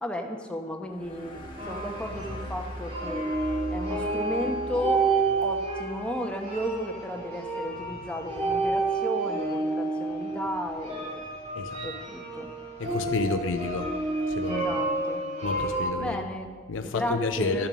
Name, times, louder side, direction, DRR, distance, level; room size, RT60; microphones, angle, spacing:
voice 1, 0.0-3.3 3.7-5.0 5.4-11.3 11.8-12.5 14.4-15.2 16.0-16.5 16.8-17.7, equal, 5° left, 2 dB, 1.0 m, -34 dB
sound 1, 0.9-8.0, equal, 25° left, 1.6 m, -42 dB
sound 2, 1.6-15.9, right 3 dB, 30° right, 2.3 m, -30 dB
voice 2, 11.6-11.9 12.8-13.9 14.4-14.7 15.4-16.2 16.7-17.7, left 3 dB, 75° left, 7 dB, 0.5 m, -30 dB
12.0 x 7.2 x 6.2 m, 1.5 s
head